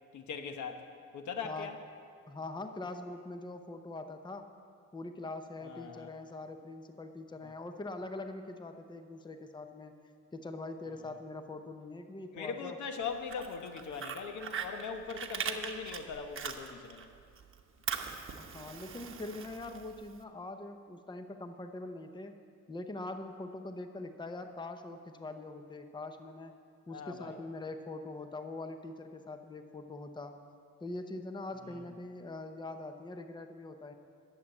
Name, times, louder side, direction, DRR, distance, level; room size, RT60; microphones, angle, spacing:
voice 1, 0.1-0.9 1.1-1.8 5.6-6.1 7.4-7.5 12.3-17.1 26.9-27.4 31.7-31.8, left 5 dB, 70° left, 6 dB, 1.1 m, -40 dB
voice 2, 1.4-1.7 2.3-4.4 4.9-9.9 10.3-12.8 18.4-22.3 22.7-26.6 26.9-30.3 30.8-33.9, left 2 dB, 15° left, 7 dB, 0.8 m, -43 dB
Fire, 13.1-17.1 17.4-20.2, right 7 dB, 45° right, 1.0 m, -40 dB
11.5 x 7.4 x 8.3 m, 2.2 s
cardioid pair, 90°, 30 cm